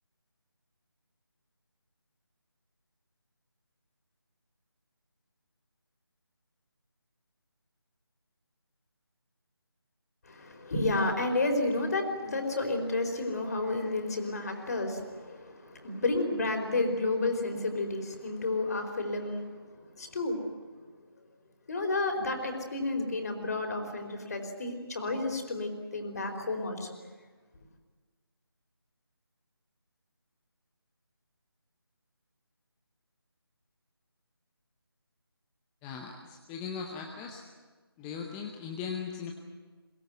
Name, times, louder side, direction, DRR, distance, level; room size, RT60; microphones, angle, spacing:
voice 1, 10.2-20.4 21.7-27.0, left 2 dB, 40° left, 5 dB, 4.6 m, -31 dB
voice 2, 35.8-37.4 38.0-39.3, left 6 dB, 5° left, 2 dB, 0.7 m, -38 dB
23.0 x 21.0 x 9.3 m, 1.4 s
figure-of-eight pair, 160°, 13 cm